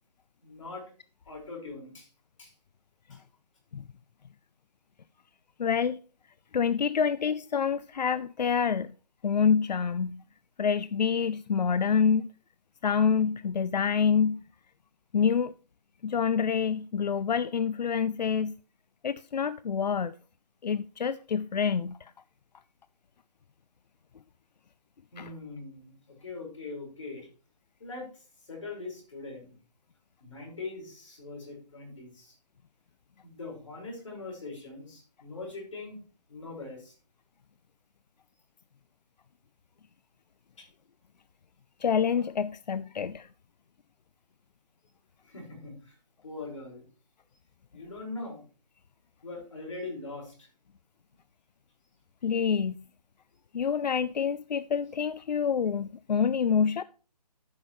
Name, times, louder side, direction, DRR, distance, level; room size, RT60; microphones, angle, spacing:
voice 1, 0.4-0.9 1.3-2.1 2.4-2.5 3.1-3.2 25.1-27.3 27.8-28.2 28.5-29.6 30.2-32.4 33.2-36.0 36.3-37.0 40.6-40.7 45.2-46.0 46.2-46.9 47.7-48.4 49.2-50.5, left 3 dB, 50° left, 5.2 m, -41 dB
voice 2, 5.6-6.0 6.5-8.9 9.2-10.2 10.6-12.2 12.8-14.4 15.1-15.5 16.0-18.5 19.0-20.1 20.6-22.1 25.2-25.3 41.8-43.3 52.2-52.8 53.5-56.8, left 6 dB, 85° left, 0.5 m, -27 dB
14.5 x 7.4 x 3.1 m
hypercardioid pair, 180°, 21 cm